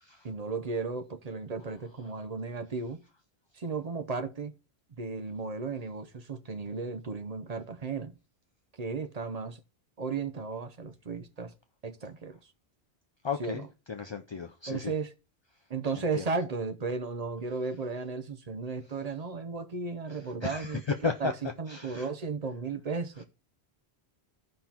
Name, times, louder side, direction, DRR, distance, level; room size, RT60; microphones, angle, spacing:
voice 1, 0.2-3.0 3.5-4.5 5.0-8.2 8.8-9.6 10.0-11.5 11.8-12.5 13.4-13.7 14.7-15.1 15.7-21.3 21.6-23.2, right 4 dB, 45° right, 0.7 m, -35 dB
voice 2, 13.2-14.9 16.1-16.3 20.1-21.3 21.7-22.1, left 5 dB, 40° left, 0.4 m, -34 dB
14.0 x 5.4 x 2.9 m
omnidirectional pair, 1.1 m